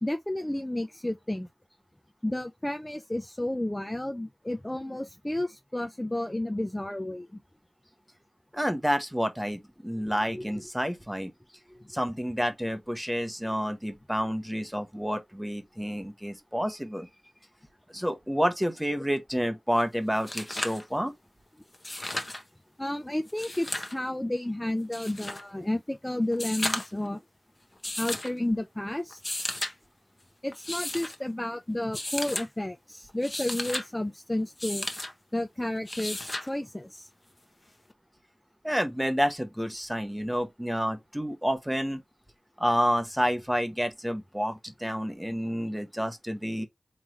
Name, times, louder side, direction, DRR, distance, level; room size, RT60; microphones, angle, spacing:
voice 1, 0.0-1.5 2.2-7.3 11.8-11.9 22.8-27.2 28.0-29.2 30.4-34.9 35.3-37.1, left 1 dB, 15° left, 0.4 m, -31 dB
voice 2, 8.5-11.3 11.9-17.1 17.9-21.1 38.6-42.0 42.6-46.7, equal, 5° right, 1.0 m, -29 dB
sound 1, 19.8-19.9 20.1-20.8 21.7-22.4 23.3-24.0 24.9-25.4 26.3-27.0 27.8-28.3 29.1-29.7 30.5-31.1 31.9-32.5 33.1-33.9 34.6-35.1 35.9-36.5 37.9-38.0, left 1 dB, 30° left, 1.1 m, -34 dB
3.7 x 3.1 x 3.0 m
cardioid pair, 45°, 0 cm